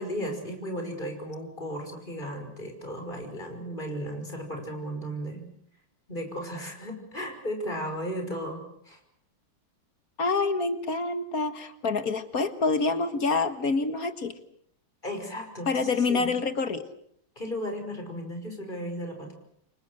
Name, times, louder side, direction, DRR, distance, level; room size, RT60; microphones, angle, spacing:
voice 1, 0.0-5.4 6.1-9.0 15.0-16.3 17.4-19.3, equal, 25° left, 4 dB, 6.0 m, -35 dB
voice 2, 10.2-14.3 15.7-16.8, left 4 dB, 50° left, 9 dB, 2.0 m, -27 dB
29.5 x 24.5 x 6.5 m, 0.67 s
omnidirectional pair, 2.0 m